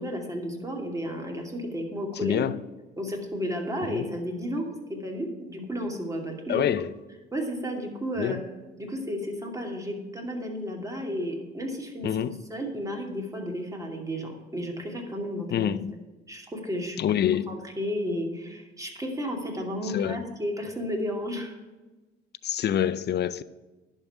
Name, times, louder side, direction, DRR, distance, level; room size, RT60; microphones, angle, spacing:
voice 1, 0.0-2.5 3.0-6.9 7.3-8.4 8.8-15.7 16.3-17.2 17.5-21.5, equal, 15° right, 2.6 m, -33 dB
voice 2, 2.2-2.6 3.8-4.1 6.5-6.9 8.2-8.4 12.0-12.4 15.5-15.9 17.0-17.6 19.8-20.2 22.4-23.4, left 10 dB, 55° left, 0.6 m, -26 dB
11.0 x 5.5 x 8.3 m
cardioid pair, 90°, 20 cm